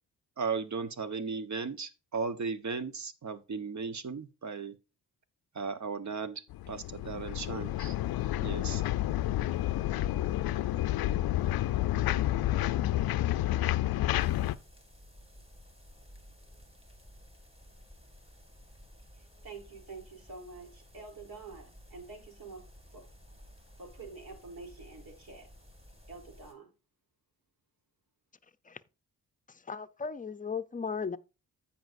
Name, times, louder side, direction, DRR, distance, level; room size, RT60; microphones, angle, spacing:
voice 1, 0.4-4.7 5.5-7.9 8.4-8.8, right 5 dB, 45° right, 1.1 m, -36 dB
sound 1, 6.5-14.5, left 14 dB, 70° left, 0.5 m, -30 dB
sound 2, 14.2-26.5, equal, 15° right, 2.1 m, -55 dB
voice 2, 19.1-22.6 22.9-23.0 23.8-25.5 26.1-26.7, right 4 dB, 65° right, 3.5 m, -47 dB
voice 3, 29.5-31.2, left 5 dB, 20° left, 0.6 m, -36 dB
15.0 x 5.2 x 2.6 m
supercardioid pair, 55°, 38 cm